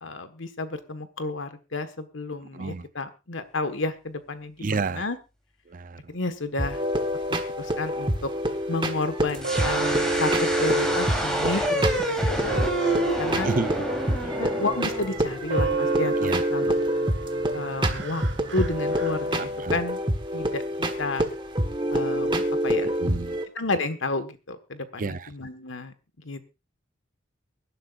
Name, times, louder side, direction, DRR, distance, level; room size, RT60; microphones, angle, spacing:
voice 1, 0.0-5.2 6.1-6.8 7.6-8.3 8.7-13.5 14.4-16.1 16.5-16.7 17.5-18.2 18.5-20.0 20.3-20.6 21.0-21.3 21.9-22.9 23.5-25.9 26.2-26.5, left 2 dB, 90° left, 10 dB, 1.5 m, -31 dB
voice 2, 2.5-2.9 4.6-5.1 5.7-6.1 12.1-12.2 13.4-13.7 14.2-14.5 16.2-16.4 19.4-19.8 22.8-23.4 25.0-25.3, right 3 dB, 45° right, 15 dB, 0.6 m, -31 dB
sound 1, 6.6-23.4, right 1 dB, 25° right, 1.4 m, -27 dB
sound 2, 9.4-16.2, right 1 dB, 5° left, 3.5 m, -29 dB
sound 3, 9.4-19.8, right 5 dB, 65° right, 1.6 m, -34 dB
24.0 x 11.5 x 2.5 m, 0.28 s
head